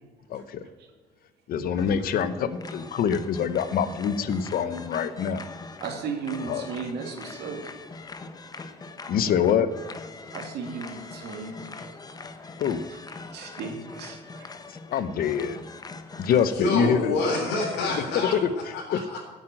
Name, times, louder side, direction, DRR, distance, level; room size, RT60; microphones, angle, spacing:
voice 1, 0.3-0.6 1.5-5.4 6.5-6.7 9.1-9.7 12.6-12.8 14.7-15.6 16.2-17.2 18.4-18.5 18.9-19.2, left 7 dB, 60° left, 13 dB, 1.0 m, -25 dB
sound 1, 1.8-17.9, left 3 dB, 20° left, 1.0 m, -42 dB
voice 2, 5.8-7.6 10.3-12.3 12.9-14.5, right 5 dB, 75° right, 3 dB, 2.5 m, -36 dB
voice 3, 16.5-18.3 18.7-19.2, left 3 dB, 85° left, -1 dB, 3.8 m, -27 dB
9.1 x 8.2 x 9.0 m, 1.3 s
cardioid pair, 110°, 17 cm